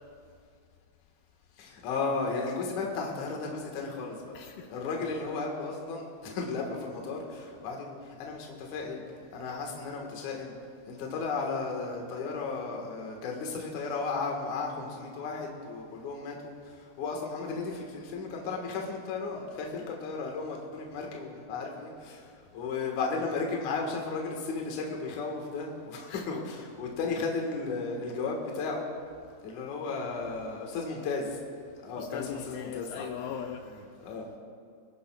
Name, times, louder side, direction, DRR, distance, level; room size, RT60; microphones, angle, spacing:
voice 1, 1.6-4.4 4.7-9.0 9.3-10.5 10.9-16.3 16.7-28.9 29.4-31.4 31.8-33.0 34.0-34.3, left 4 dB, 60° left, 0 dB, 2.5 m, -34 dB
voice 2, 4.3-4.7 26.1-26.4 32.0-33.7 34.1-34.2, left 8 dB, 80° left, 4 dB, 2.1 m, -39 dB
25.5 x 11.5 x 2.3 m, 2.3 s
omnidirectional pair, 4.5 m